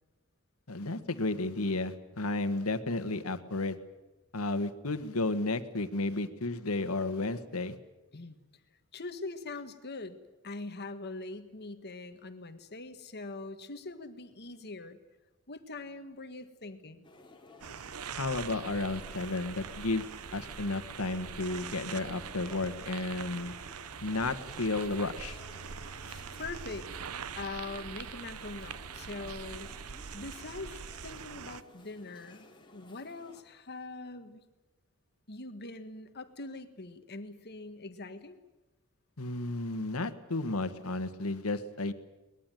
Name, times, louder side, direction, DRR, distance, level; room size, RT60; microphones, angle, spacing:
voice 1, 0.7-3.7 4.3-7.8 18.1-20.0 20.3-23.5 24.0-25.4 39.2-41.9, left 2 dB, 75° left, 10 dB, 1.6 m, -33 dB
voice 2, 8.9-10.2 10.4-15.0 15.5-17.1 26.4-26.9 27.4-29.8 30.1-34.4 35.3-38.4, left 3 dB, 50° left, 9 dB, 1.6 m, -43 dB
sound 1, 17.0-33.4, left 2 dB, 25° left, 2.9 m, -55 dB
sound 2, 17.6-31.6, right 7 dB, 80° right, 0.8 m, -43 dB
22.5 x 20.5 x 9.2 m, 1.1 s
head